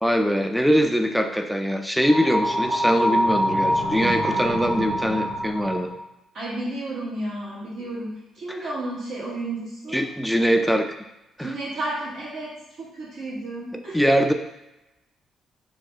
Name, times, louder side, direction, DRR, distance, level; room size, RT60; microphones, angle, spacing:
voice 1, 0.0-5.9 9.9-10.9 11.4-11.5 13.7-14.3, equal, ahead, 5 dB, 0.3 m, -22 dB
sound 1, 2.0-6.0, equal, 35° right, 0.8 m, -25 dB
voice 2, 6.3-10.0 11.4-12.5 12.8-14.0, right 2 dB, 65° right, -8 dB, 1.5 m, -32 dB
2.9 x 2.2 x 3.1 m, 0.93 s
cardioid pair, 90°, 0 cm